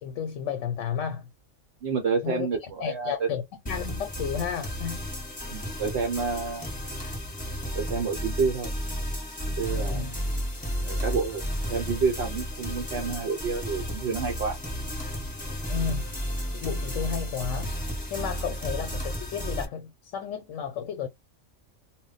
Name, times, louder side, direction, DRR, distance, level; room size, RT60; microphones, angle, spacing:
voice 1, 0.0-1.3 2.2-5.1 9.7-10.1 15.7-16.1 16.5-17.7 18.1-21.1, left 8 dB, 75° left, 0.9 m, -33 dB
voice 2, 1.8-3.3 5.5-6.7 7.7-8.7 9.6-10.1 10.8-11.4 11.7-14.6, right 5 dB, 60° right, 0.9 m, -29 dB
sound 1, 3.7-19.7, equal, 5° left, 1.0 m, -33 dB
2.2 x 2.2 x 3.8 m
omnidirectional pair, 1.4 m